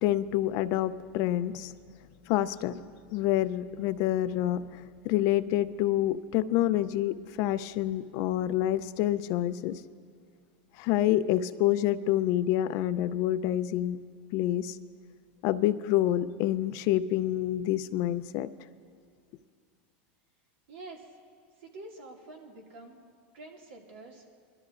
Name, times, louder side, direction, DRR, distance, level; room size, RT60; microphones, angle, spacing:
voice 1, 0.0-1.7 2.3-2.8 3.1-9.8 10.8-14.0 14.3-14.8 15.4-18.5, left 13 dB, 55° left, 13 dB, 0.5 m, -27 dB
voice 2, 20.7-21.1 21.6-23.0 23.3-24.2, right 2 dB, 80° right, 1 dB, 2.1 m, -47 dB
22.0 x 12.5 x 2.5 m, 2.2 s
supercardioid pair, 130°, 6 cm